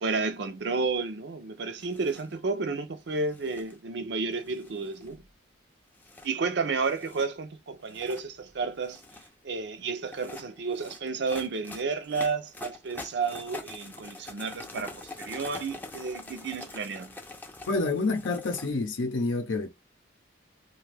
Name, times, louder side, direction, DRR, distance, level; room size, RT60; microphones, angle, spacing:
voice 1, 0.0-5.2 6.2-9.0 9.4-17.1, right 4 dB, 60° right, 0.5 m, -31 dB
sound 1, 1.8-2.3 3.2-3.8 4.4-5.2 5.9-6.3 6.8-7.3 7.8-8.2 8.7-9.3 10.0-18.7, left 2 dB, 10° left, 0.5 m, -45 dB
voice 2, 17.7-19.7, left 3 dB, 80° left, 0.6 m, -28 dB
2.6 x 2.2 x 3.3 m
head